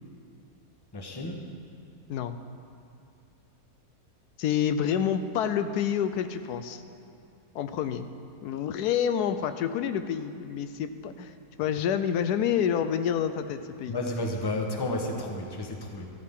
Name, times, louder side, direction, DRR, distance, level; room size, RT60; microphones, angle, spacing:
voice 1, 0.9-1.4 13.9-16.1, left 1 dB, 20° left, 1 dB, 1.0 m, -32 dB
voice 2, 4.4-6.8 7.5-8.1 8.4-11.3 11.6-14.0, left 8 dB, 85° left, 10 dB, 1.1 m, -28 dB
14.0 x 13.5 x 3.7 m, 2.6 s
omnidirectional pair, 1.7 m